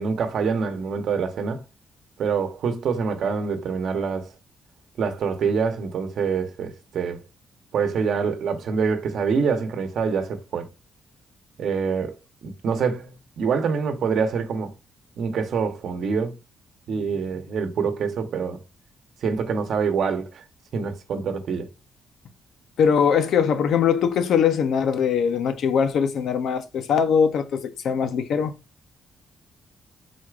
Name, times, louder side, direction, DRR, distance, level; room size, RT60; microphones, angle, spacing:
voice 1, 0.0-1.6 2.2-4.3 5.0-7.2 7.7-10.6 11.6-12.1 12.4-14.7 15.2-16.4 16.9-18.6 19.2-20.4 20.7-21.7, right 5 dB, 65° right, 0.9 m, -25 dB
voice 2, 22.8-28.5, left 7 dB, 75° left, 0.7 m, -21 dB
4.6 x 4.1 x 2.5 m
cardioid pair, 105°, 0 cm